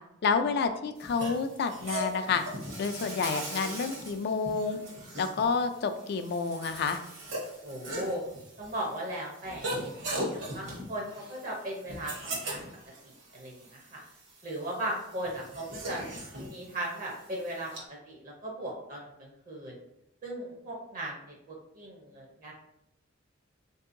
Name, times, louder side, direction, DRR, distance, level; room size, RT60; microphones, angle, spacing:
voice 1, 0.2-2.4 2.8-4.8 5.2-7.0, left 5 dB, 55° left, 8 dB, 0.3 m, -29 dB
sound 1, 1.0-17.8, right 1 dB, 65° right, 1.0 m, -40 dB
Insect, 2.4-4.2 4.7-5.0 6.2-8.1, right 2 dB, 90° right, 1.1 m, -42 dB
voice 2, 7.6-8.2 8.6-12.6 13.0-14.0 14.4-16.0 16.4-17.7 18.0-19.8 20.2-22.5, right 1 dB, 45° right, -1 dB, 0.6 m, -38 dB
3.6 x 2.7 x 2.5 m, 0.82 s
head